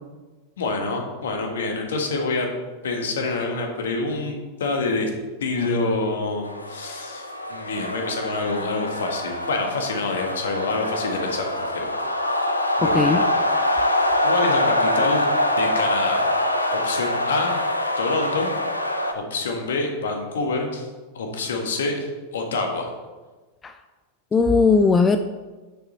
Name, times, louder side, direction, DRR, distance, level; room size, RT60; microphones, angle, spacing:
voice 1, 0.6-2.5 2.8-5.1 5.4-11.9 12.8-13.3 14.2-15.3 15.6-16.3 16.7-17.5 18.0-18.5 19.1-20.9 21.1-22.9, left 3 dB, 60° left, 3 dB, 1.7 m, -26 dB
sound 1, 6.4-19.1, left 1 dB, 85° left, 0.8 m, -24 dB
voice 2, 24.3-25.2, left 4 dB, 15° left, 8 dB, 0.4 m, -17 dB
10.0 x 7.1 x 4.0 m, 1.3 s
figure-of-eight pair, 90°, 0 cm